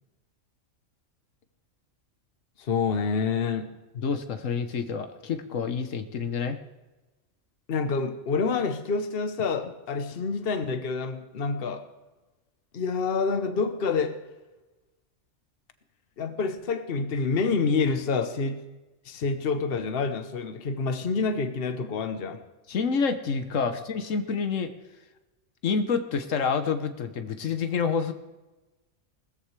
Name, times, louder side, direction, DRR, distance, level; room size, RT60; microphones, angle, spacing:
voice 1, 2.6-3.7 7.7-11.9 12.7-14.2 16.2-18.7 19.0-22.4, left 4 dB, 50° left, 9 dB, 1.1 m, -27 dB
voice 2, 4.0-6.6 22.7-24.7 25.6-28.1, left 5 dB, 85° left, 9 dB, 1.3 m, -28 dB
19.0 x 14.5 x 3.2 m, 1.1 s
omnidirectional pair, 1.3 m